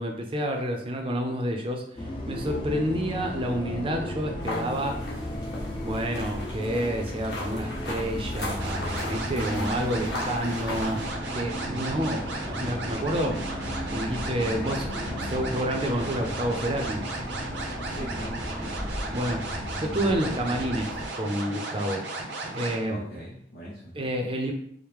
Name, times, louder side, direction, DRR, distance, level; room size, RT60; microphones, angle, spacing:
voice 1, 0.0-1.8 2.3-5.0 5.8-11.0 11.3-13.4 13.9-17.0 19.1-19.4 19.8-22.0 22.5-23.1 23.9-24.5, right 1 dB, 30° right, 3 dB, 0.5 m, -29 dB
Bus, 2.0-21.1, left 1 dB, 30° left, 0.6 m, -35 dB
sound 1, 4.4-11.1, left 1 dB, 80° left, 1.3 m, -38 dB
sound 2, 8.6-22.8, right 2 dB, 85° right, 0.8 m, -35 dB
voice 2, 11.7-12.2 17.9-18.9 22.9-24.0, equal, 55° left, -7 dB, 0.9 m, -41 dB
4.6 x 2.1 x 3.5 m, 0.68 s
head